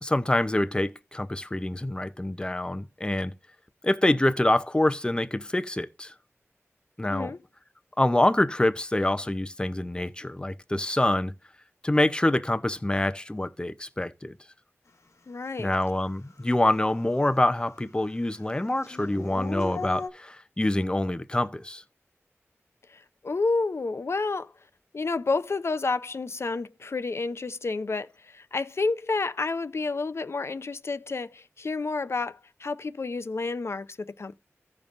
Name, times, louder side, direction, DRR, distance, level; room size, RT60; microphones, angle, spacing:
voice 1, 0.0-3.3 3.8-6.1 7.0-7.3 8.0-11.3 11.8-14.4 15.6-21.8, left 1 dB, 20° left, 0.7 m, -26 dB
voice 2, 7.1-7.4 15.3-15.7 22.9-24.5 24.9-34.3, left 3 dB, 60° left, 0.6 m, -30 dB
Dog / Siren, 15.8-15.9 16.3-17.7 18.0-20.1, left 3 dB, 80° left, 1.1 m, -37 dB
15.5 x 5.3 x 2.5 m
wide cardioid pair, 65°, 5 cm